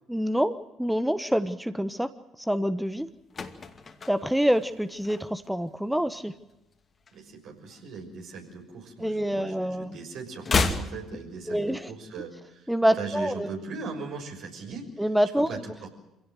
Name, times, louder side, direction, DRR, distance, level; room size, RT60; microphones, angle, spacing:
voice 1, 0.1-2.1 2.4-3.1 4.1-6.3 9.0-10.0 11.5-11.9 12.7-13.5 15.0-15.6, equal, 5° right, 11 dB, 1.2 m, -26 dB
sound 1, 3.0-5.6 5.9-6.2 6.5-8.0 8.2-9.6 9.8-12.0 12.2-12.3, left 4 dB, 40° left, 2.5 m, -32 dB
voice 2, 7.1-12.7 13.0-14.9 15.3-15.9, right 4 dB, 65° right, 2 dB, 6.2 m, -39 dB
26.0 x 17.0 x 7.8 m, 0.94 s
hypercardioid pair, 55°, 0 cm